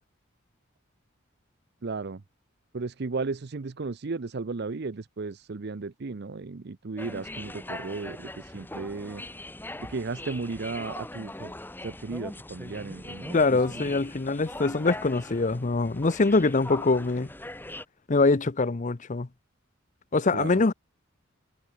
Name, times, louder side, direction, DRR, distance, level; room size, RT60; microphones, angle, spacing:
voice 1, 1.8-2.2 2.7-9.2 9.9-11.5 11.8-13.8 20.3-20.5, right 4 dB, 55° right, 0.6 m, -35 dB
sound 1, 7.0-17.9, left 1 dB, 10° left, 2.0 m, -41 dB
voice 2, 13.3-17.3 18.1-19.3 20.1-20.7, left 3 dB, 40° left, 0.7 m, -24 dB
head